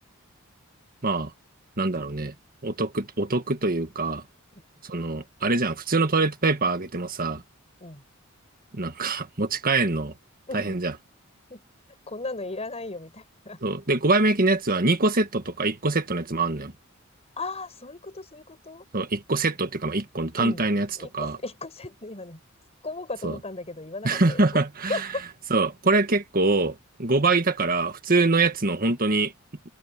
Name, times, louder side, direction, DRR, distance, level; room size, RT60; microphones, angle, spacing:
voice 1, 1.8-2.3 2.6-4.2 4.8-7.4 8.7-10.1 10.5-10.9 13.6-16.7 18.9-20.9 21.1-21.4 23.2-23.3 24.0-25.0 25.5-29.3, right 3 dB, 45° right, 1.7 m, -24 dB
voice 2, 10.5-10.8 11.5-11.6 12.1-13.6 17.4-18.8 20.3-20.7 21.0-22.4 22.8-24.6 24.9-25.2, left 2 dB, 30° left, 5.2 m, -36 dB
head